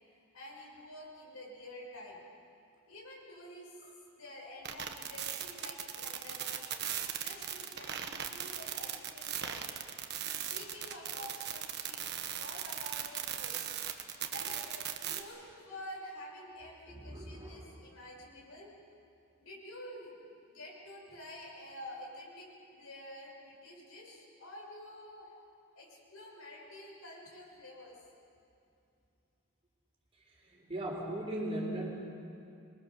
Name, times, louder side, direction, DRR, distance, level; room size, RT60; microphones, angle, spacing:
voice 1, 0.1-2.2 2.9-3.7 4.1-6.7 7.1-9.8 10.5-13.6 14.3-18.7 19.4-25.3 25.7-28.0, left 1 dB, 75° left, -2 dB, 6.4 m, -49 dB
sound 1, 4.6-15.2, right 9 dB, 50° right, 1.4 m, -38 dB
voice 2, 16.9-17.6 30.5-31.9, right 1 dB, 25° right, -2 dB, 4.2 m, -38 dB
26.0 x 22.5 x 6.8 m, 2.7 s
head